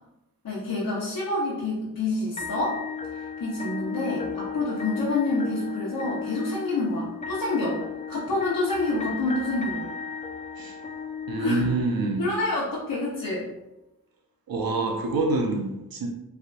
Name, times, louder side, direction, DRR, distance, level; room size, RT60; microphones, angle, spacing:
voice 1, 0.4-2.8 3.1-7.8 8.1-9.9 11.4-11.6 12.2-13.5, left 2 dB, 80° left, -8 dB, 1.0 m, -28 dB
sound 1, 2.4-12.4, left 6 dB, 20° left, 0.4 m, -35 dB
voice 2, 11.3-12.3 14.5-16.1, right 3 dB, 80° right, 2 dB, 0.7 m, -26 dB
4.2 x 3.3 x 2.5 m, 0.92 s
cardioid pair, 45°, 35 cm